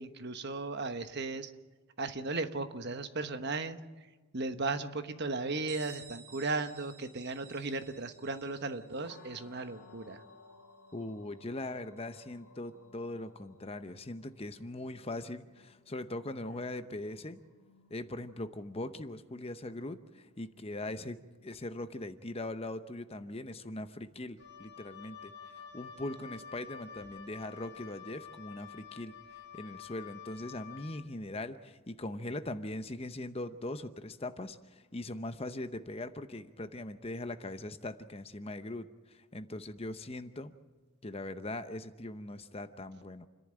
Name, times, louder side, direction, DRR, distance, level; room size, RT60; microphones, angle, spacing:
voice 1, 0.0-1.5 2.0-3.8 4.3-10.2, right 3 dB, 50° right, 9 dB, 1.1 m, -36 dB
Bell, 5.7-11.2, right 5 dB, 85° right, 7.1 m, -54 dB
sound 1, 9.0-28.8, left 2 dB, 80° left, 3.0 m, -63 dB
voice 2, 10.9-17.4 17.9-40.5 41.0-43.3, left 2 dB, 25° left, 10 dB, 0.8 m, -41 dB
Wind instrument woodwind instrument, 24.4-31.1, left 7 dB, 50° left, 1.7 m, -49 dB
29.0 x 11.0 x 8.9 m, 1.3 s
head